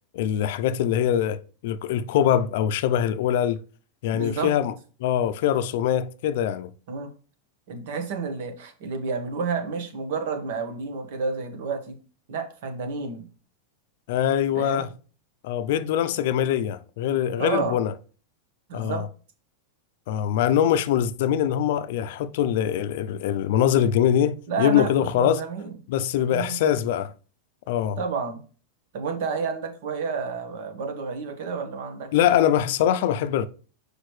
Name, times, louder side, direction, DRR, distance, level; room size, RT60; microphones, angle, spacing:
voice 1, 0.1-3.6 4.0-4.7 5.0-6.7 14.1-14.9 15.4-17.9 18.7-19.1 20.1-25.4 25.9-27.1 27.7-28.0 32.1-33.5, left 10 dB, 60° left, 0.4 m, -23 dB
voice 2, 4.1-4.5 6.9-7.1 7.7-11.9 12.3-13.3 14.5-14.9 17.4-17.8 18.7-19.0 24.5-25.7 26.3-26.6 28.0-28.4 28.9-32.1, right 5 dB, 60° right, 1.4 m, -30 dB
6.4 x 4.9 x 3.2 m
supercardioid pair, 160°, 0 cm